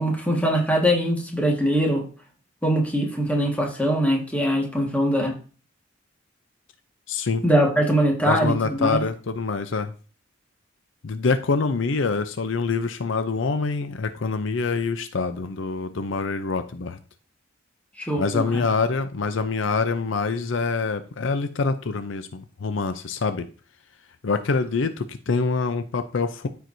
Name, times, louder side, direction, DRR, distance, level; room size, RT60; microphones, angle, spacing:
voice 1, 0.0-2.0 2.6-5.3 7.4-9.0 18.0-18.6, equal, 5° left, 0 dB, 1.6 m, -22 dB
voice 2, 7.1-7.4 8.3-9.9 11.0-17.0 18.2-23.4 24.2-26.5, left 4 dB, 70° left, 10 dB, 0.6 m, -25 dB
13.5 x 4.6 x 2.7 m, 0.37 s
head